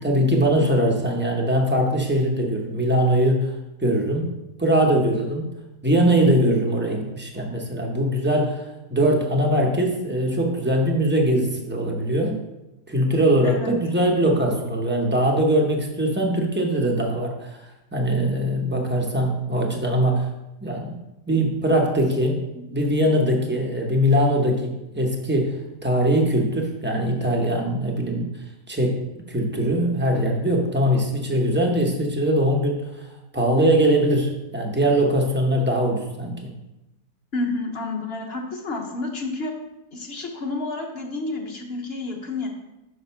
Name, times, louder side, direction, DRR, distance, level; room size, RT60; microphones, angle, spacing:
voice 1, 0.0-4.3 4.6-5.5 5.8-12.4 12.9-20.3 20.6-21.0 21.3-22.4 22.7-28.3 28.7-36.5, right 1 dB, 15° right, 0 dB, 0.4 m, -21 dB
voice 2, 13.4-13.8 22.7-22.9 37.3-39.5 39.9-42.5, left 2 dB, 45° left, 2 dB, 0.9 m, -30 dB
5.1 x 4.9 x 5.6 m, 0.96 s
omnidirectional pair, 1.7 m